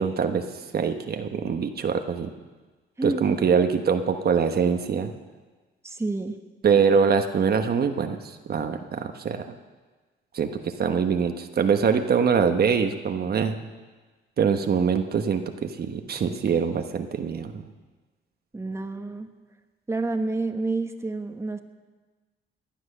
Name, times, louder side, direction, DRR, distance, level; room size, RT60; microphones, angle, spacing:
voice 1, 0.0-2.3 3.0-5.1 6.6-9.5 10.3-13.7 14.4-17.6, right 6 dB, 50° right, 6 dB, 1.2 m, -24 dB
voice 2, 5.8-6.4 18.5-19.3 19.9-21.6, right 3 dB, 15° right, 6 dB, 1.3 m, -29 dB
18.5 x 10.5 x 6.7 m, 1.3 s
cardioid pair, 90°, 20 cm